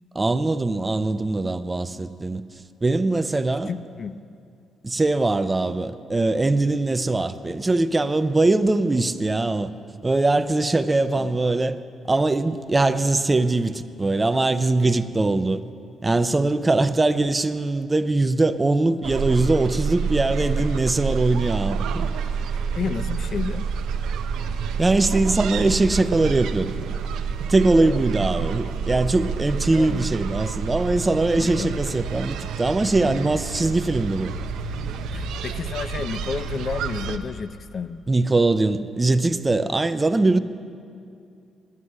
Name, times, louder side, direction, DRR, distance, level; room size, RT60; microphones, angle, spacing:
voice 1, 0.1-2.4 2.8-3.7 4.8-9.7 10.0-11.8 12.1-15.6 16.0-22.1 24.8-26.7 27.5-34.3 38.1-40.4, right 2 dB, 20° right, 12 dB, 0.5 m, -21 dB
voice 2, 3.7-4.2 8.9-9.0 11.2-11.4 20.4-20.7 22.8-23.7 27.8-28.0 29.7-30.1 31.4-31.8 33.0-33.3 35.1-38.0, left 6 dB, 50° left, 13 dB, 0.3 m, -31 dB
sound 1, 19.0-37.2, right 6 dB, 85° right, 0.5 m, -28 dB
9.7 x 9.6 x 7.4 m, 2.5 s
cardioid pair, 90°, 0 cm